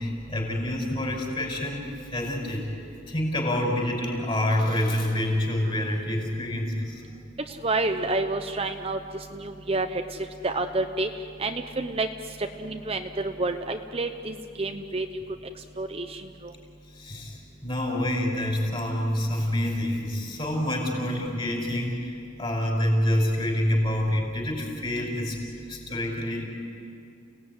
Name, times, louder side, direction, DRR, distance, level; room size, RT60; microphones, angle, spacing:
voice 1, 0.0-1.9 2.1-2.6 3.1-7.0 16.9-22.1 22.4-25.4 25.7-26.5, left 1 dB, 25° left, 1 dB, 5.4 m, -27 dB
voice 2, 7.5-9.0 9.3-10.0 10.4-11.1 11.4-12.1 12.4-15.1 15.8-16.5, right 2 dB, 30° right, 6 dB, 0.8 m, -29 dB
30.0 x 18.0 x 9.6 m, 2.5 s
head